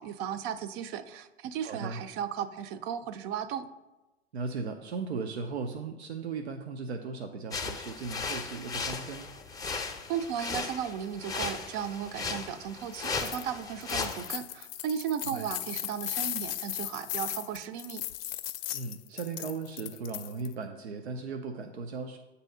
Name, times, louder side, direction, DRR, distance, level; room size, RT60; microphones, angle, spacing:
voice 1, 0.0-3.7 10.1-18.0, right 8 dB, 40° right, 12 dB, 0.5 m, -35 dB
voice 2, 1.6-2.0 4.3-9.3 15.2-15.5 18.7-22.2, right 4 dB, 90° right, 5 dB, 0.5 m, -37 dB
sound 1, 7.5-14.3, left 4 dB, 10° left, 0.5 m, -36 dB
sound 2, 12.9-13.4 13.8-20.5, left 13 dB, 60° left, 0.5 m, -37 dB
8.1 x 2.7 x 5.4 m, 1.1 s
hypercardioid pair, 95°, 32 cm